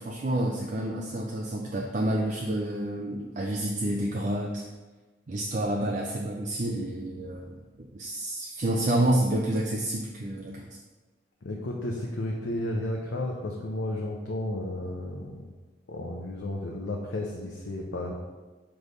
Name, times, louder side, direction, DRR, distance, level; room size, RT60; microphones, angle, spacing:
voice 1, 0.0-4.6 5.3-10.7, right 1 dB, 40° right, 0 dB, 0.5 m, -29 dB
voice 2, 11.4-15.5 15.9-18.1, left 1 dB, 85° left, -1 dB, 0.7 m, -33 dB
6.2 x 3.4 x 5.2 m, 1.3 s
head